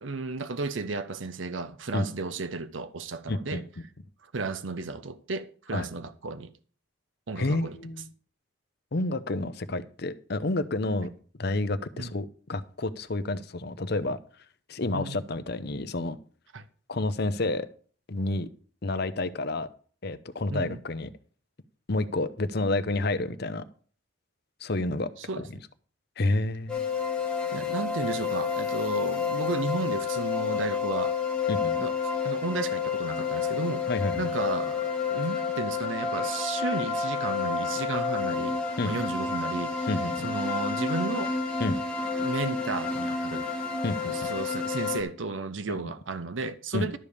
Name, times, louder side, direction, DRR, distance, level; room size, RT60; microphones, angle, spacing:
voice 1, 0.0-3.6 4.3-6.5 7.3-7.8 12.0-12.1 14.9-15.2 16.5-16.6 20.5-20.8 25.2-25.4 27.5-31.2 31.8-31.9 32.2-33.8 34.2-38.6 38.8-39.9 40.2-41.3 42.2-43.5 44.0-47.0, right 3 dB, 85° right, 0.8 m, -33 dB
voice 2, 3.3-3.6 5.7-5.9 7.4-8.1 8.9-11.1 11.4-14.2 14.7-16.2 16.9-17.7 18.1-18.5 18.8-19.7 20.0-21.1 21.9-23.6 24.6-25.1 25.4-25.5 26.2-26.9 31.5-31.8 33.9-34.3 38.8-38.9 39.9-40.3 41.6-41.8 43.8-44.3 45.7-45.9 46.7-46.9, left 2 dB, 55° left, 0.8 m, -29 dB
sound 1, 26.7-45.0, left 5 dB, 5° left, 2.0 m, -30 dB
12.5 x 5.0 x 7.0 m
head